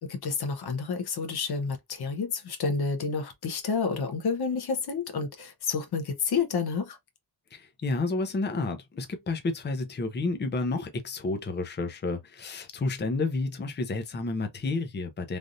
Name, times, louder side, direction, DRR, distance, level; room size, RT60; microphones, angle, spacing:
voice 1, 0.0-7.0, left 5 dB, 65° left, 1.0 m, -30 dB
voice 2, 7.5-15.4, left 3 dB, 25° left, 0.6 m, -30 dB
3.3 x 2.5 x 2.6 m
wide cardioid pair, 160°, 40 cm